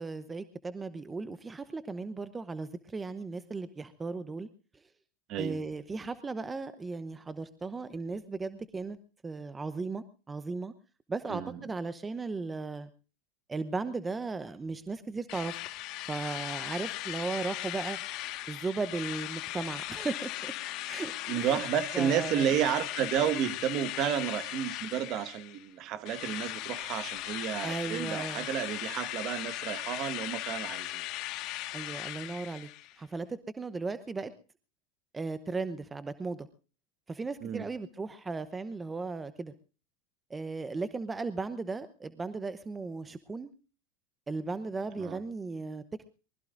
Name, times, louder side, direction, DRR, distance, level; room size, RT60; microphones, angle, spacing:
voice 1, 0.0-4.5 5.4-9.0 9.2-10.7 11.1-12.9 13.5-15.6 16.1-18.0 18.5-20.5 20.9-21.6 21.9-22.5 27.6-28.4 31.7-32.7 33.0-34.3 35.1-36.5 37.1-39.5 40.3-43.5 44.3-46.0, right 3 dB, 15° right, 12 dB, 0.8 m, -36 dB
voice 2, 5.3-5.6 11.3-11.6 21.3-31.0 37.4-37.7 45.0-45.2, right 9 dB, 50° right, 11 dB, 1.5 m, -31 dB
Drill, 15.3-25.7 26.1-33.0, left 16 dB, 55° left, 1.6 m, -38 dB
24.0 x 20.0 x 2.6 m, 0.36 s
supercardioid pair, 115°, 0 cm